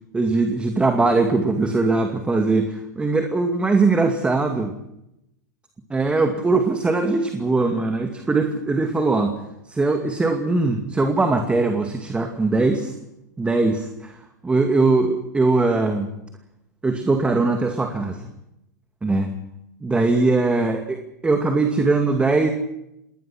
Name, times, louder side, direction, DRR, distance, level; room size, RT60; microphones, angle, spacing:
voice 1, 0.1-4.7 5.9-9.4 9.7-12.9 13.4-14.2 14.4-16.1 16.8-18.3 19.0-19.3 19.8-22.5, right 3 dB, 10° right, 5 dB, 2.3 m, -21 dB
28.0 x 20.0 x 6.1 m, 0.85 s
hypercardioid pair, 110°, 10 cm